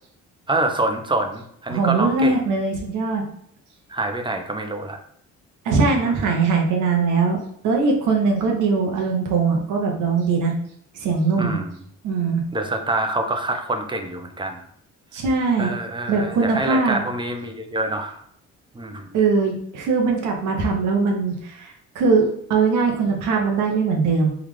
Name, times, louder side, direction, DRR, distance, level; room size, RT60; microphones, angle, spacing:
voice 1, 0.5-2.4 3.9-5.0 6.0-6.3 11.4-11.8 12.5-14.6 15.6-18.2 18.7-19.2, right 2 dB, 15° right, 4 dB, 0.5 m, -26 dB
voice 2, 1.7-3.2 5.6-7.4 7.6-10.5 11.0-11.6 12.0-12.4 15.1-15.8 16.1-17.0 19.1-24.3, right 4 dB, 85° right, 1 dB, 0.7 m, -21 dB
3.5 x 2.4 x 3.1 m, 0.68 s
cardioid pair, 90°, 30 cm